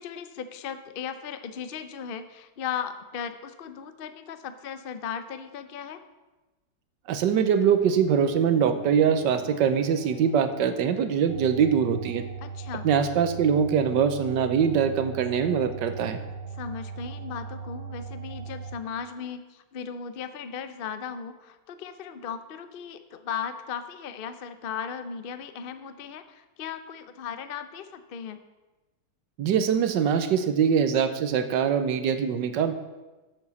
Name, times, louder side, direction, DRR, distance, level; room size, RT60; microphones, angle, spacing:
voice 1, 0.0-6.0 12.4-12.9 16.5-28.4, left 7 dB, 65° left, 10 dB, 0.5 m, -37 dB
voice 2, 7.1-12.2 12.8-16.2 29.4-32.7, right 7 dB, 80° right, 10 dB, 1.4 m, -23 dB
Bowed string instrument, 7.7-12.6, equal, ahead, 2.2 m, -46 dB
sound 1, 11.3-18.8, right 5 dB, 60° right, 1.2 m, -38 dB
9.1 x 7.8 x 6.9 m, 1.1 s
omnidirectional pair, 1.9 m